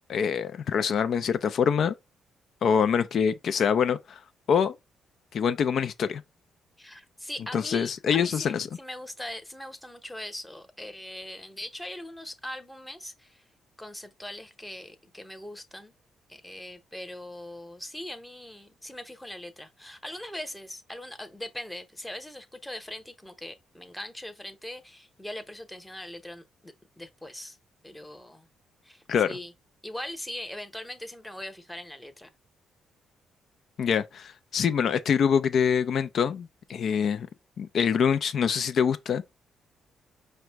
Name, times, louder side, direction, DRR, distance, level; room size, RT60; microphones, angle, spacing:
voice 1, 0.1-1.9 2.6-4.2 4.5-4.7 5.3-6.2 7.5-8.7 29.1-29.3 33.8-37.3 37.6-39.2, left 7 dB, 60° left, 0.4 m, -25 dB
voice 2, 6.8-13.4 13.8-15.9 16.3-27.6 27.8-28.5 28.8-29.5 29.8-32.3, left 1 dB, 5° left, 0.8 m, -41 dB
5.0 x 2.1 x 4.5 m
cardioid pair, 90°, 0 cm